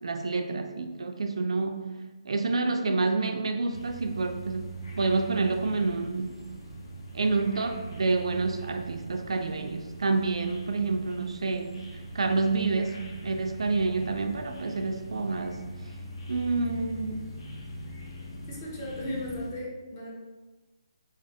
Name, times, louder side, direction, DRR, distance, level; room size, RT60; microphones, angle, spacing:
voice 1, 0.0-1.9 2.2-4.7 5.0-6.4 7.1-11.8 12.1-15.6 16.3-17.3, right 3 dB, 80° right, 5 dB, 0.3 m, -28 dB
sound 1, 3.7-19.5, right 1 dB, 60° left, 0.8 m, -42 dB
voice 2, 18.5-20.1, left 1 dB, 25° left, -3 dB, 0.6 m, -36 dB
3.2 x 2.0 x 2.6 m, 1.2 s
hypercardioid pair, 175°, 3 cm